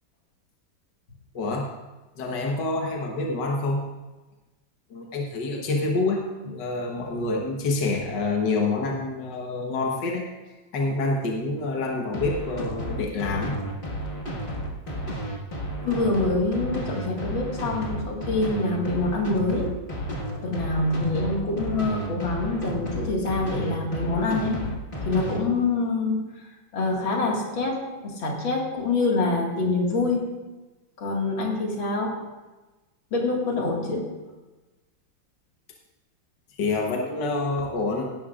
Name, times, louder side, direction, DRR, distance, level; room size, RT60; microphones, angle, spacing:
voice 1, 1.4-1.7 2.2-3.9 4.9-10.2 10.7-13.6 36.6-38.1, left 3 dB, 65° left, 0 dB, 1.8 m, -27 dB
sound 1, 12.1-25.4, equal, 30° left, 1.8 m, -32 dB
voice 2, 15.8-19.7 20.4-24.7 25.1-26.2 26.7-30.4 31.0-32.2 33.1-34.1, left 3 dB, 85° left, -1 dB, 2.8 m, -26 dB
17.0 x 12.5 x 2.5 m, 1.1 s
omnidirectional pair, 2.1 m